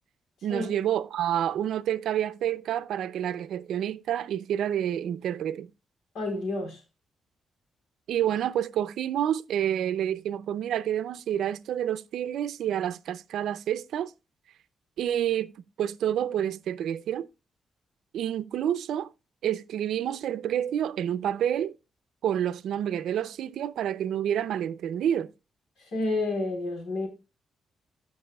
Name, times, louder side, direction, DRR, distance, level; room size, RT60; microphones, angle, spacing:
voice 1, 0.4-5.7 8.1-14.1 15.0-15.5 15.8-17.3 18.1-19.1 19.4-21.7 22.2-25.3, right 10 dB, 80° right, 0.5 m, -28 dB
voice 2, 6.1-6.8 25.8-27.1, left 2 dB, 85° left, 3.8 m, -30 dB
15.0 x 5.4 x 2.3 m
wide cardioid pair, 175°, 0 cm